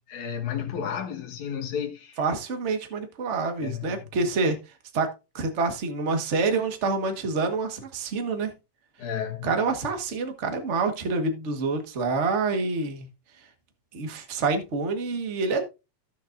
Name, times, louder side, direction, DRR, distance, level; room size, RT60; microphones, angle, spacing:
voice 1, 0.1-2.2 3.6-4.0 9.0-9.5, left 8 dB, 75° left, 2.9 m, -32 dB
voice 2, 2.2-4.6 4.9-5.1 5.3-8.5 9.4-13.1 13.9-15.7, right 3 dB, 30° right, 1.4 m, -27 dB
16.0 x 6.4 x 2.6 m
omnidirectional pair, 3.4 m